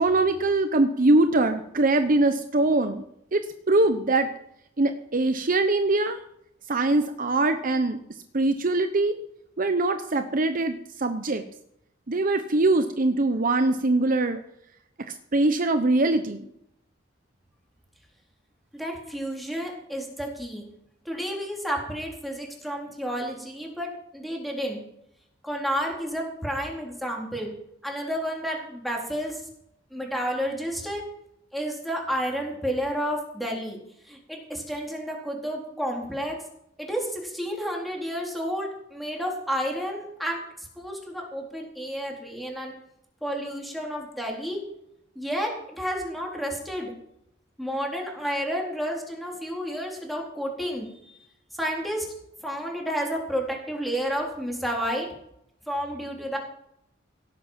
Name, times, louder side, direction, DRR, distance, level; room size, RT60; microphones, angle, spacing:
voice 1, 0.0-3.0 3.3-3.4 3.7-4.3 4.8-6.2 6.7-8.0 8.3-9.2 9.6-11.4 12.1-14.4 15.3-16.5, right 2 dB, 50° right, 8 dB, 0.9 m, -22 dB
voice 2, 18.7-20.6 21.1-24.8 25.4-27.5 27.8-29.4 29.9-31.0 31.5-33.8 34.1-36.4 36.8-42.7 43.2-44.6 45.2-46.9 47.6-51.2 51.6-52.1 52.4-55.1 55.7-56.4, equal, ahead, 0 dB, 4.1 m, -31 dB
17.5 x 7.8 x 7.5 m, 0.76 s
head